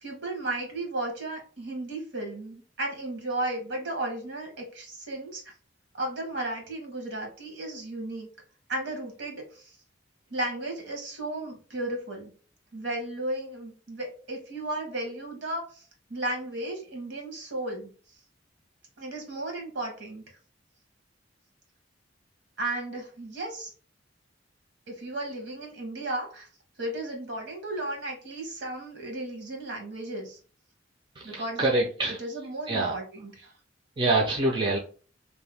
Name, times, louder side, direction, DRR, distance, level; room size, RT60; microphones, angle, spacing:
voice 1, 0.0-5.4 5.9-8.3 8.7-9.7 10.3-12.3 12.7-15.8 16.1-17.9 19.0-20.2 22.6-23.7 24.9-26.5 26.8-30.4 31.2-31.6 32.1-33.5, right 1 dB, 70° right, 2 dB, 1.1 m, -34 dB
voice 2, 31.2-32.2 32.7-32.9 34.0-34.8, right 2 dB, 25° right, -2 dB, 0.5 m, -25 dB
2.7 x 2.2 x 3.3 m, 0.39 s
head